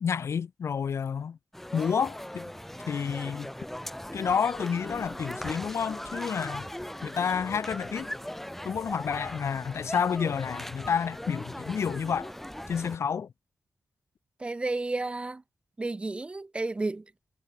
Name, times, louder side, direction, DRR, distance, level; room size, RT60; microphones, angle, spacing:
voice 1, 0.0-1.4 1.7-2.5 2.9-3.5 4.1-6.7 7.0-8.1 8.6-12.3 12.7-13.3, left 7 dB, 55° left, 0.4 m, -30 dB
sound 1, 1.5-13.0, left 1 dB, 5° left, 0.8 m, -39 dB
voice 2, 14.4-15.4 15.8-17.0, right 2 dB, 20° right, 0.4 m, -31 dB
wide cardioid pair, 165°, 6 cm